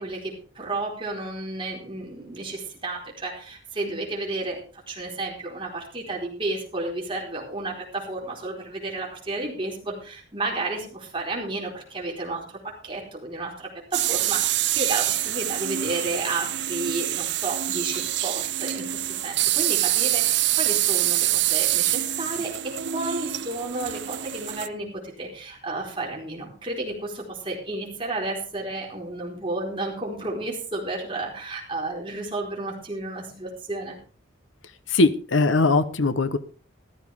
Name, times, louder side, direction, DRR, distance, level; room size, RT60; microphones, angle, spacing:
voice 1, 0.0-34.0, right 2 dB, 25° right, -1 dB, 4.4 m, -32 dB
sound 1, 13.9-24.7, right 14 dB, 60° right, 0.6 m, -25 dB
voice 2, 34.9-36.4, left 3 dB, 85° left, 13 dB, 0.9 m, -20 dB
14.5 x 13.5 x 3.6 m, 0.38 s
head